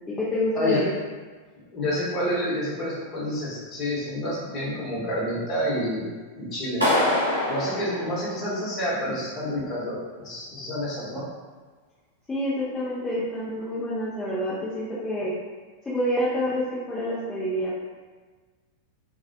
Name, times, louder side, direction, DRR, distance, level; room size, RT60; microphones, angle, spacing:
voice 1, 0.1-0.9 12.3-15.3 15.9-17.7, equal, 15° left, -10 dB, 0.5 m, -27 dB
voice 2, 1.7-6.1 6.3-6.8 7.5-11.3, equal, 30° left, -8 dB, 1.0 m, -28 dB
Clapping, 6.8-8.9, left 1 dB, 90° right, 0.8 m, -25 dB
2.3 x 2.1 x 2.7 m, 1.4 s
figure-of-eight pair, 90°, 0 cm